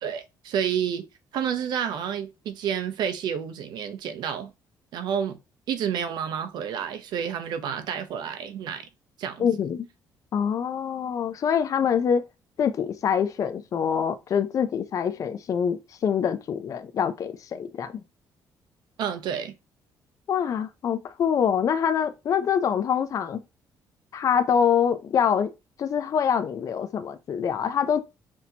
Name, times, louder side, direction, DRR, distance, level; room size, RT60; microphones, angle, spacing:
voice 1, 0.0-1.0 1.3-4.5 4.9-5.4 5.7-8.9 9.2-9.5 19.0-19.5, right 8 dB, 75° right, 0.7 m, -29 dB
voice 2, 9.4-9.9 10.3-12.2 12.6-18.0 20.3-23.4 24.1-25.5 25.8-28.0, left 7 dB, 50° left, 0.5 m, -25 dB
6.0 x 2.8 x 2.8 m
cardioid pair, 110°, 7 cm